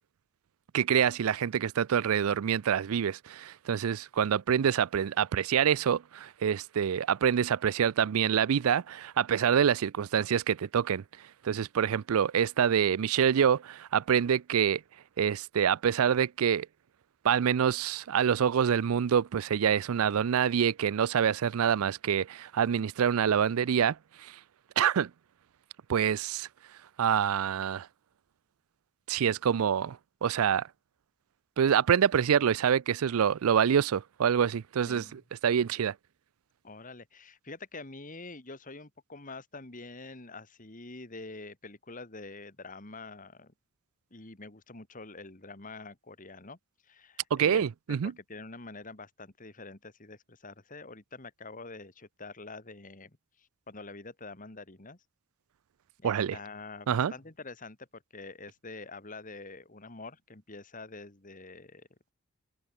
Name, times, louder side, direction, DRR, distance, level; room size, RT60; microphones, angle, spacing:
voice 1, 0.7-11.0 11.4-14.8 15.2-16.7 17.2-24.4 24.8-25.1 25.9-26.5 27.0-27.9 29.1-30.7 31.6-35.9 47.3-48.1 56.0-56.4 56.9-57.1, right 8 dB, 75° right, 0.4 m, -26 dB
voice 2, 34.8-35.2 36.6-43.5 44.1-46.6 46.8-55.0 56.0-61.9, left 3 dB, 35° left, 2.3 m, -46 dB
open air
head